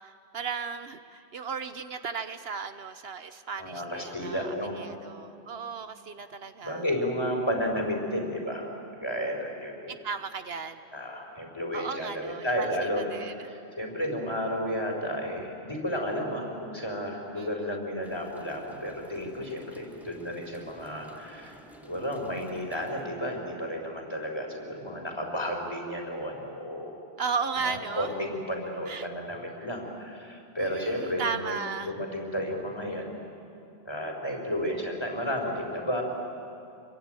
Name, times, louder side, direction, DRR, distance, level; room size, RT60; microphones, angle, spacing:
voice 1, 0.0-6.8 9.9-10.8 11.7-12.7 13.0-13.4 17.4-17.7 27.2-28.3 28.9-29.1 30.6-31.9, right 5 dB, 70° right, 10 dB, 1.2 m, -35 dB
voice 2, 3.6-4.8 6.6-9.9 10.9-13.0 13.4-21.6 21.8-26.9 27.6-31.6 31.9-33.1 33.8-36.0, equal, 25° left, 1 dB, 4.4 m, -32 dB
sound 1, 18.0-23.0, equal, ahead, 1.8 m, -52 dB
26.5 x 23.0 x 9.1 m, 2.6 s
omnidirectional pair, 1.1 m